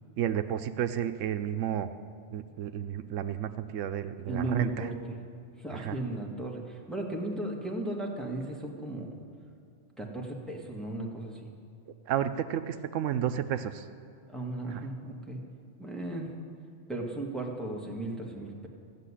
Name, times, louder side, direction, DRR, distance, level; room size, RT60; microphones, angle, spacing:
voice 1, 0.2-1.9 2.3-4.9 5.7-6.0 12.1-13.9 14.7-14.8, right 10 dB, 85° right, 10 dB, 1.0 m, -32 dB
voice 2, 4.3-4.9 5.6-9.1 10.0-11.5 14.3-15.4 15.8-16.3 16.9-18.7, right 2 dB, ahead, -2 dB, 1.9 m, -35 dB
14.5 x 6.8 x 9.9 m, 2.6 s
omnidirectional pair, 1.3 m